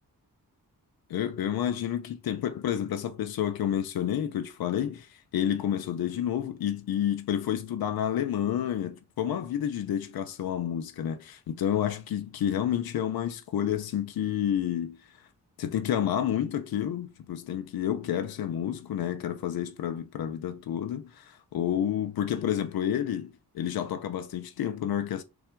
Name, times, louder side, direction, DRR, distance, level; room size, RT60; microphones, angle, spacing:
voice 1, 1.1-15.0 15.6-25.2, left 10 dB, 90° left, 0.5 m, -30 dB
3.4 x 2.4 x 4.3 m
wide cardioid pair, 120°, 35 cm